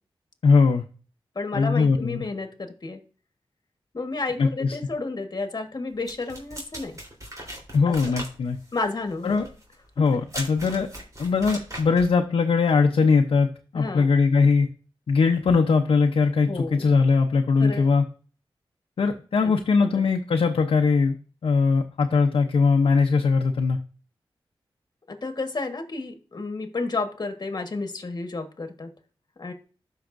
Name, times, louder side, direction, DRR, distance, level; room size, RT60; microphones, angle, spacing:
voice 1, 0.4-0.8 1.5-2.3 4.4-4.8 7.7-8.6 9.2-9.5 10.0-10.9 11.2-14.7 15.1-18.0 19.0-21.2 21.4-23.8, left 4 dB, 80° left, 2 dB, 0.7 m, -21 dB
voice 2, 1.3-3.0 3.9-7.0 7.9-8.0 8.7-9.4 13.7-14.1 16.5-16.9 17.6-17.9 19.4-19.5 25.1-28.9 29.4-29.5, left 3 dB, 45° left, 6 dB, 1.4 m, -31 dB
sound 1, 6.1-12.2, right 1 dB, 35° right, 3.6 m, -39 dB
13.0 x 5.6 x 2.6 m, 0.38 s
cardioid pair, 65°, 9 cm